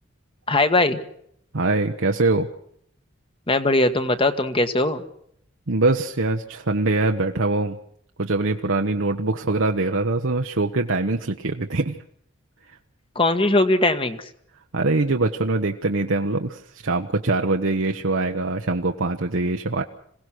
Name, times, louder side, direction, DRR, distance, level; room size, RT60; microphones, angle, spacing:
voice 1, 0.5-1.0 3.5-5.0 13.1-14.3, left 2 dB, 25° left, 9 dB, 1.4 m, -20 dB
voice 2, 1.5-2.5 5.7-7.8 8.2-12.0 14.7-19.8, right 2 dB, 75° right, 4 dB, 1.1 m, -23 dB
26.5 x 17.5 x 6.3 m, 0.69 s
head